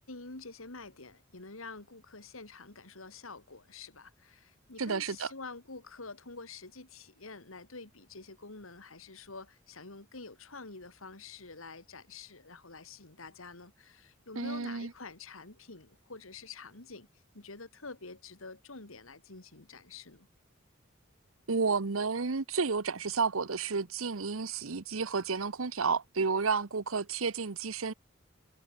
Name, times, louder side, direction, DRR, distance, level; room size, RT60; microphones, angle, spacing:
voice 1, 0.1-17.1 17.3-20.3, left 3 dB, 85° left, 2.8 m, -47 dB
voice 2, 4.8-5.3 14.4-14.9 21.5-27.9, right 4 dB, 85° right, 1.0 m, -31 dB
head